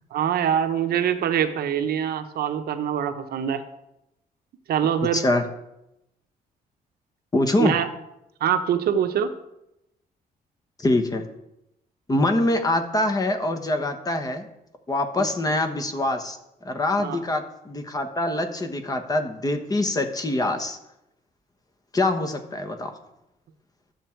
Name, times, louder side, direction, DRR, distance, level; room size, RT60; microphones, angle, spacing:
voice 1, 0.1-3.6 4.7-5.2 7.6-7.9 8.4-9.3 15.2-15.3 17.0-17.2, right 9 dB, 75° right, 8 dB, 0.9 m, -24 dB
voice 2, 5.1-5.4 7.3-7.7 10.8-11.2 12.1-14.5 14.9-16.4 16.6-20.8 21.9-22.9, left 2 dB, 25° left, 6 dB, 1.1 m, -24 dB
12.0 x 7.3 x 4.6 m, 0.86 s
cardioid pair, 130°, 16 cm